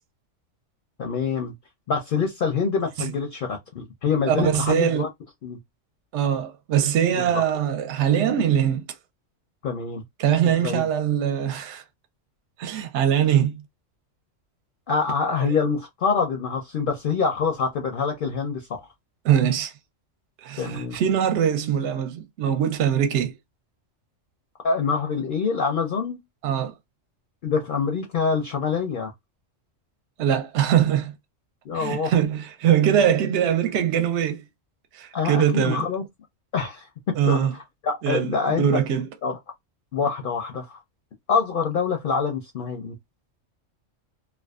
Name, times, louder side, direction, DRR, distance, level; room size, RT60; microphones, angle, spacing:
voice 1, 1.0-1.5 1.9-5.1 5.4-5.6 7.1-7.4 9.6-10.0 10.4-10.9 14.9-18.9 20.6-21.0 24.6-26.2 27.4-29.1 31.7-32.1 35.1-36.0 36.5-37.5 37.8-38.8 39.2-39.4 39.9-40.8 41.3-42.9, left 5 dB, 60° left, 0.6 m, -25 dB
voice 2, 4.3-5.1 6.1-8.8 10.2-11.8 12.6-13.6 15.5-15.6 19.2-19.7 20.4-23.3 26.4-26.7 30.2-31.1 31.7-34.4 34.9-35.9 37.2-37.5 38.0-39.1, right 9 dB, 65° right, 0.8 m, -22 dB
2.5 x 2.2 x 2.3 m
omnidirectional pair, 1.3 m